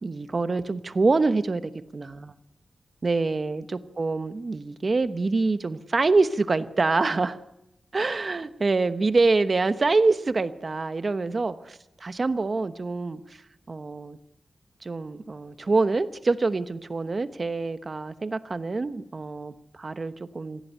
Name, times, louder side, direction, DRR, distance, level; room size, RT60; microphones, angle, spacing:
voice 1, 0.0-2.3 3.0-7.4 7.9-13.4 13.7-14.2 14.8-20.6, right 3 dB, 40° right, 11 dB, 1.0 m, -25 dB
25.5 x 15.5 x 10.0 m, 0.91 s
wide cardioid pair, 150°, 0 cm